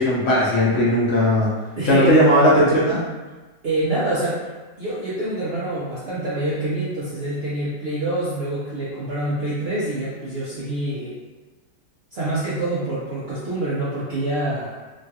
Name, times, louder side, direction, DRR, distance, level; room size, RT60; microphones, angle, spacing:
voice 1, 0.0-1.5 1.9-3.0, equal, 60° left, -6 dB, 0.7 m, -17 dB
voice 2, 1.8-2.2 3.6-4.5 4.8-11.2 12.1-14.8, right 1 dB, 85° right, -9 dB, 0.5 m, -26 dB
3.1 x 2.3 x 2.7 m, 1.2 s
omnidirectional pair, 1.8 m